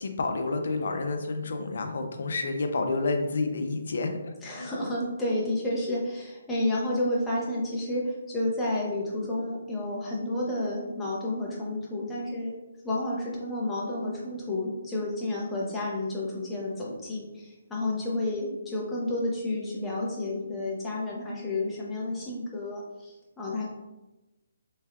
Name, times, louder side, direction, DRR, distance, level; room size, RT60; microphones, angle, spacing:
voice 1, 0.0-4.8, left 3 dB, 60° left, 6 dB, 0.5 m, -30 dB
voice 2, 4.4-12.5 12.8-23.7, left 1 dB, 5° left, -6 dB, 0.6 m, -31 dB
3.4 x 3.2 x 2.3 m, 1.0 s
hypercardioid pair, 165°, 0 cm